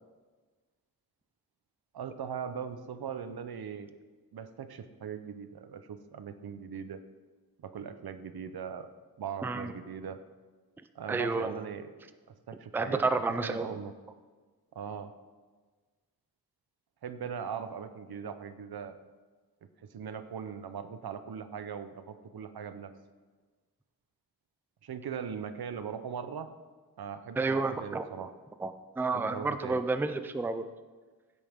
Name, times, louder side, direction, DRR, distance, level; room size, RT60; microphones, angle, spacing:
voice 1, 1.9-3.9 4.3-7.0 7.6-8.9 9.2-10.2 10.9-11.9 12.3-13.9 14.7-15.1 17.0-19.0 19.9-22.9 24.8-26.5 27.0-28.3 29.1-29.8, right 7 dB, 85° right, 10 dB, 0.8 m, -40 dB
voice 2, 9.4-9.7 11.1-11.6 12.7-13.7 27.4-28.1 28.6-30.7, right 3 dB, 5° right, 10 dB, 0.4 m, -30 dB
15.5 x 8.4 x 3.6 m, 1.4 s
wide cardioid pair, 170°, 36 cm